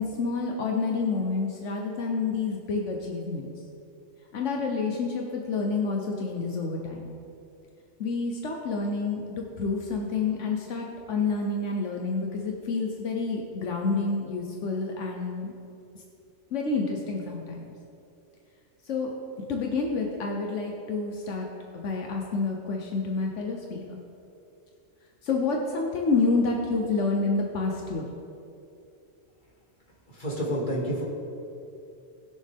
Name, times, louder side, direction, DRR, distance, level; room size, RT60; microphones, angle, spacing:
voice 1, 0.0-3.5 4.3-7.2 8.0-15.5 16.5-17.7 18.9-19.1 19.5-21.5 21.7-24.0 25.2-28.1, left 4 dB, 85° left, 1 dB, 1.3 m, -28 dB
voice 2, 30.2-31.0, equal, 40° left, -5 dB, 2.6 m, -29 dB
19.0 x 6.5 x 3.6 m, 2.6 s
omnidirectional pair, 1.2 m